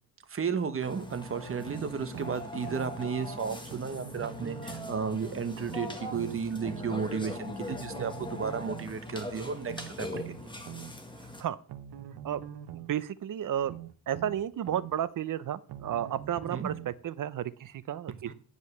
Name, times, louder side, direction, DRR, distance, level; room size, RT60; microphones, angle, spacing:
voice 1, 0.3-10.6 16.5-16.7 18.3-18.4, right 6 dB, 35° right, 10 dB, 1.1 m, -33 dB
Burping eructation, 0.8-11.4, left 2 dB, 10° left, 1.6 m, -41 dB
sound 1, 1.7-2.9 3.7-5.0 5.7-6.9 7.7-8.9 9.7-10.9 11.7-12.9 13.7-14.9 15.7-17.0 17.7-17.8, right 11 dB, 80° right, 1.0 m, -43 dB
voice 2, 12.9-13.8 14.1-18.3, right 10 dB, 55° right, 17 dB, 0.7 m, -32 dB
9.8 x 5.3 x 6.5 m, 0.42 s
cardioid pair, 120°, 38 cm